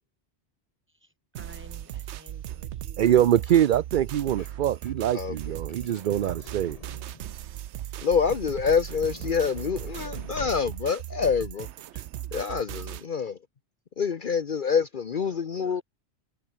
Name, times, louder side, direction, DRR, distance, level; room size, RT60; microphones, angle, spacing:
voice 1, 0.9-3.3 15.2-15.8, equal, 10° right, 4.8 m, -52 dB
sound 1, 1.3-13.0, right 12 dB, 90° right, 0.9 m, -38 dB
voice 2, 3.0-6.8, right 11 dB, 55° right, 0.6 m, -23 dB
Truck / Door, 4.3-7.5 8.5-11.1 11.7-11.8 12.0-12.2, left 3 dB, 35° left, 1.6 m, -46 dB
voice 3, 8.0-11.7 12.3-13.4 14.0-15.8, left 6 dB, 50° left, 1.0 m, -26 dB
omnidirectional pair, 1.1 m